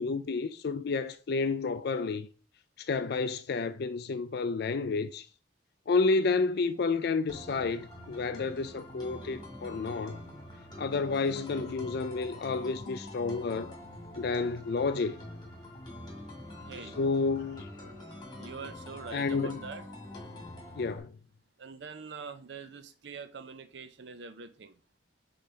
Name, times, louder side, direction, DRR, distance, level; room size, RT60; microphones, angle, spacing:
voice 1, 0.0-2.3 2.8-5.3 5.9-10.2 10.8-13.8 14.2-15.1 17.0-17.7 19.1-19.6 20.8-21.1, left 4 dB, 60° left, 0.4 m, -30 dB
sound 1, 7.3-21.0, left 1 dB, 25° left, 2.1 m, -45 dB
voice 2, 16.6-16.9 18.4-19.8 21.6-24.8, right 5 dB, 65° right, 0.6 m, -44 dB
5.0 x 3.9 x 5.6 m
head